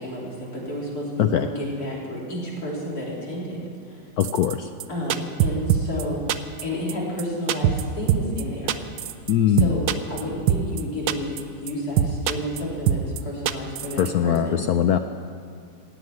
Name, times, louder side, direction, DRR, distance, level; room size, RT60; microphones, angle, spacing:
voice 1, 0.0-3.6 3.9-4.0 4.9-8.7 9.5-14.6, equal, 50° left, -5 dB, 4.0 m, -31 dB
voice 2, 4.2-4.7 9.3-9.8 14.0-15.0, left 10 dB, 70° left, 8 dB, 0.9 m, -21 dB
sound 1, 4.2-4.5 4.8-4.9 5.1-6.0 6.3-6.6 6.9-7.0 7.2-7.3 7.5-8.4 8.7-9.3 9.6-10.2 10.5-10.8 11.1-11.4 11.7-11.8 12.0-12.6 12.9-13.2 13.5-14.1 14.4-14.5, right 11 dB, 75° right, 1.3 m, -22 dB
16.5 x 8.1 x 9.5 m, 2.3 s
omnidirectional pair, 2.0 m